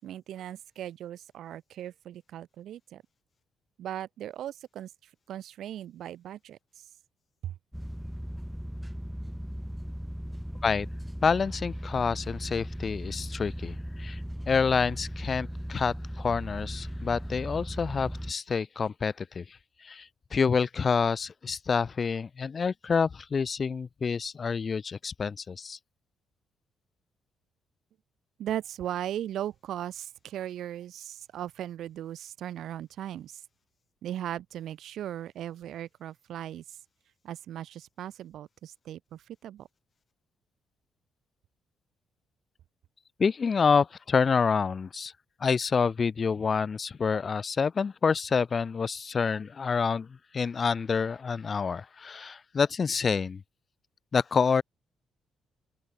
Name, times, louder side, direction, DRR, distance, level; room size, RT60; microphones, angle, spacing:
voice 1, 0.0-3.0 3.8-6.9 7.4-7.6 28.4-33.4 34.0-36.8 37.2-39.7, right 11 dB, 75° right, 3.8 m, -38 dB
sound 1, 7.7-18.3, equal, ahead, 5.6 m, -37 dB
voice 2, 11.2-14.2 14.5-19.4 19.8-25.8 43.2-45.1 45.4-50.1 50.3-53.4 54.1-54.6, left 5 dB, 40° left, 0.4 m, -27 dB
open air
cardioid pair, 90°, 0 cm